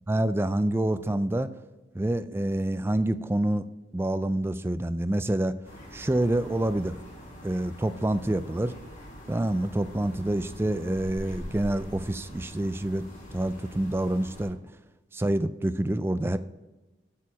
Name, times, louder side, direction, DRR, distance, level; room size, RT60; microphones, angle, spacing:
voice 1, 0.1-1.5 1.9-3.7 3.9-5.5 5.9-7.0 7.4-8.7 9.3-13.0 13.3-14.8 15.1-16.4, right 1 dB, 10° right, 12 dB, 0.3 m, -27 dB
sound 1, 5.6-14.5, equal, 40° left, 3.0 m, -44 dB
12.0 x 4.8 x 5.8 m, 1.1 s
head